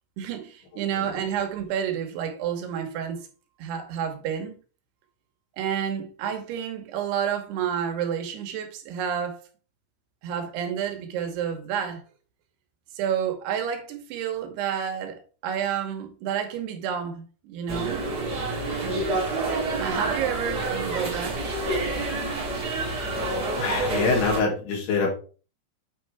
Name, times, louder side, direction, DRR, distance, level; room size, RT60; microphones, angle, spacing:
voice 1, 0.2-3.3 3.6-4.6 5.5-9.4 10.2-12.0 12.9-18.0 19.8-21.5, right 8 dB, 85° right, 3.2 m, -30 dB
sound 1, 17.7-24.4, right 2 dB, 45° right, 1.3 m, -28 dB
voice 2, 23.6-25.1, left 3 dB, 85° left, 4.3 m, -24 dB
8.9 x 4.6 x 3.3 m
omnidirectional pair, 4.6 m